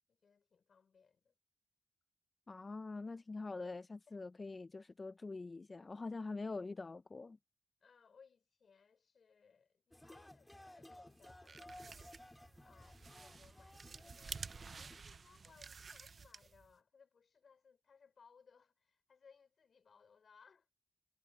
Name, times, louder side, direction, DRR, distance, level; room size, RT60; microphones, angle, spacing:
voice 1, 0.0-1.4 4.1-4.2 7.8-12.2 12.6-20.7, left 6 dB, 70° left, 4.3 m, -67 dB
voice 2, 2.5-7.4, left 3 dB, 40° left, 0.4 m, -44 dB
sound 1, 9.9-15.0, left 1 dB, 15° left, 2.6 m, -57 dB
sound 2, 11.2-16.7, right 5 dB, 55° right, 0.5 m, -51 dB
cardioid pair, 80°, 0 cm